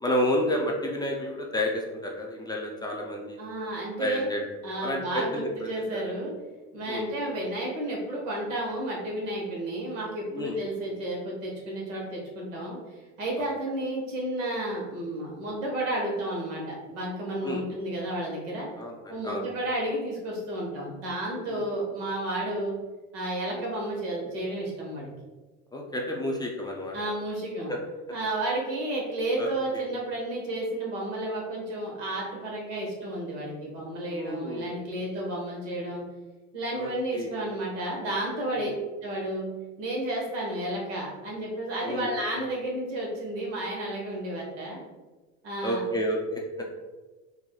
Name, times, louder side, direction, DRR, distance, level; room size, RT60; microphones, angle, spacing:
voice 1, 0.0-3.4 4.0-4.4 4.8-6.0 6.9-7.1 10.3-10.6 17.4-17.6 18.8-19.5 21.5-21.6 23.5-23.6 25.7-27.0 27.7-27.8 29.4-29.8 34.1-34.7 36.7-37.3 38.5-38.7 41.8-42.1 45.6-46.7, left 1 dB, 10° left, -1 dB, 0.4 m, -31 dB
voice 2, 3.4-4.3 4.6-6.3 6.7-18.7 19.1-22.7 23.1-25.1 26.9-27.7 28.1-36.0 36.5-38.7 39.0-39.5 39.8-44.8 45.4-45.8, right 1 dB, 85° right, -2 dB, 1.3 m, -32 dB
4.6 x 2.6 x 2.2 m, 1.2 s
supercardioid pair, 105°, 35 cm